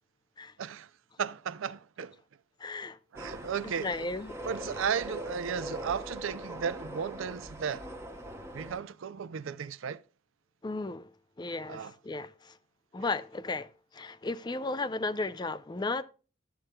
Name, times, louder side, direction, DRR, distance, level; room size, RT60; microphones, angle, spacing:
voice 1, 0.6-0.9 1.2-2.2 3.1-4.1 4.4-7.9 8.5-10.0 11.7-11.9, right 7 dB, 70° right, 0.4 m, -35 dB
voice 2, 2.6-3.0 3.8-4.4 10.6-11.1 11.4-12.6 12.9-16.0, left 3 dB, 20° left, 0.4 m, -35 dB
sound 1, 3.1-8.8, equal, 15° right, 0.8 m, -42 dB
12.5 x 7.6 x 2.2 m
head